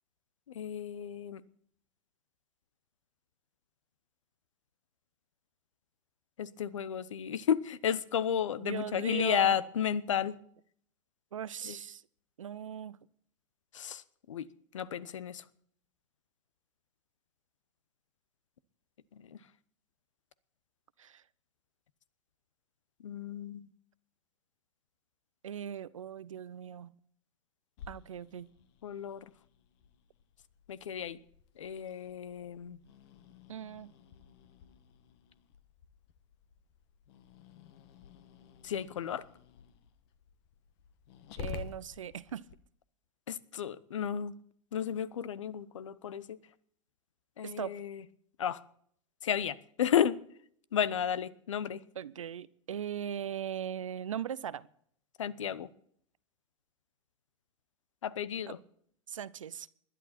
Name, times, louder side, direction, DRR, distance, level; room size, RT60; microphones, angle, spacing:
voice 1, 0.5-1.4 6.4-10.4 11.6-11.8 13.7-14.0 14.3-14.5 14.7-15.4 19.1-19.4 23.0-23.7 28.8-29.2 30.7-31.2 31.6-32.8 38.6-39.3 43.3-44.4 44.7-46.4 47.4-48.0 48.4-48.6 49.2-50.2 50.7-51.8 55.2-55.7 58.0-58.6, left 9 dB, 75° left, 18 dB, 0.9 m, -33 dB
voice 2, 8.6-9.6 11.3-12.0 12.4-13.0 21.0-21.2 25.4-26.9 27.9-28.5 33.5-33.9 41.4-42.5 47.4-47.8 52.0-54.7 59.1-59.7, right 9 dB, 80° right, 19 dB, 0.6 m, -39 dB
Growling, 27.8-42.6, left 8 dB, 55° left, 1.4 m, -51 dB
20.5 x 11.0 x 4.3 m, 0.64 s
hypercardioid pair, 90°, 16 cm